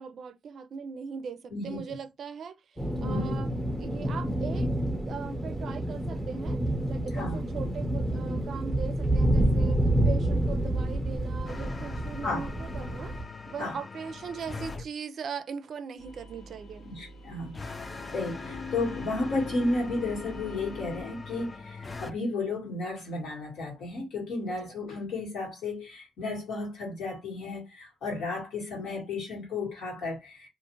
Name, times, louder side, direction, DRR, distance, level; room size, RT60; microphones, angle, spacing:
voice 1, 0.0-3.5 3.8-4.7 5.1-6.6 6.9-9.8 10.0-13.2 13.5-16.9 24.5-24.6, right 6 dB, 55° right, 0.4 m, -39 dB
voice 2, 1.5-1.8 3.0-3.4 7.1-7.4 12.2-12.5 13.6-13.8 16.8-17.5 18.1-30.5, left 2 dB, 70° left, 1.4 m, -33 dB
sound 1, 2.8-13.2, right 1 dB, 5° left, 0.9 m, -28 dB
sound 2, 11.5-14.9 17.5-22.1, left 4 dB, 25° left, 0.3 m, -42 dB
sound 3, 16.0-21.0, left 3 dB, 55° left, 0.7 m, -42 dB
2.4 x 2.4 x 2.9 m
cardioid pair, 90°, 0 cm